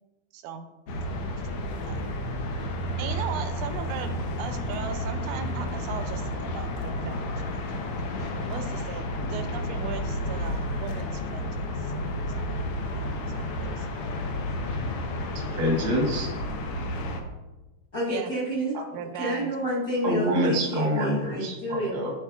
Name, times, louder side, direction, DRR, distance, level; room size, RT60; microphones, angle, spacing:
voice 1, 0.3-0.7 1.8-2.0 3.0-4.1 4.4-7.9 8.5-11.9 12.3-12.5 13.3-13.9 18.1-18.3 18.9-19.5, right 7 dB, 80° right, 8 dB, 2.0 m, -38 dB
sound 1, 0.9-17.2, left 1 dB, 80° left, 1.3 m, -31 dB
voice 2, 15.3-16.3 20.0-22.1, equal, 60° right, 0 dB, 1.0 m, -26 dB
voice 3, 17.9-18.8 19.1-21.9, right 1 dB, 60° left, -6 dB, 0.9 m, -29 dB
12.5 x 4.2 x 2.4 m, 1.1 s
omnidirectional pair, 3.6 m